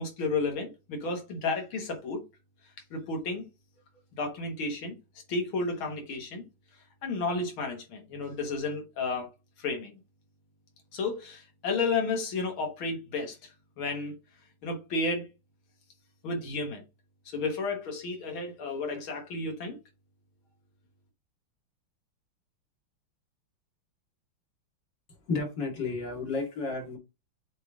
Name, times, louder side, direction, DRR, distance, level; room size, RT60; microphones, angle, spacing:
voice 1, 0.0-2.2 2.9-3.5 4.2-5.0 5.3-6.4 7.0-9.3 9.6-10.0 10.9-14.1 14.6-15.3 16.2-16.8 17.3-19.8, left 3 dB, 80° left, 2.3 m, -32 dB
voice 2, 25.3-27.0, left 3 dB, 60° left, 2.8 m, -32 dB
7.6 x 3.4 x 3.7 m
omnidirectional pair, 2.3 m